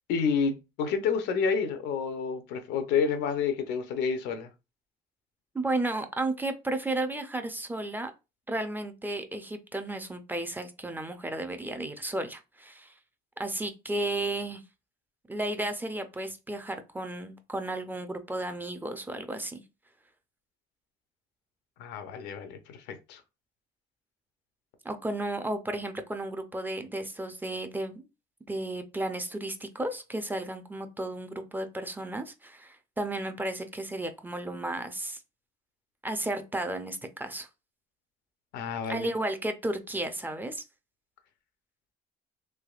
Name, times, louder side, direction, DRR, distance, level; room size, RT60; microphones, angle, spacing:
voice 1, 0.1-4.5 21.8-23.2 38.5-39.1, left 6 dB, 90° left, 0.6 m, -29 dB
voice 2, 5.5-8.1 8.5-12.9 13.4-14.6 15.3-19.6 24.8-28.0 28.5-35.2 36.0-37.5 38.9-40.6, right 1 dB, 10° right, 0.4 m, -33 dB
3.3 x 3.0 x 2.3 m
cardioid pair, 110°, 17 cm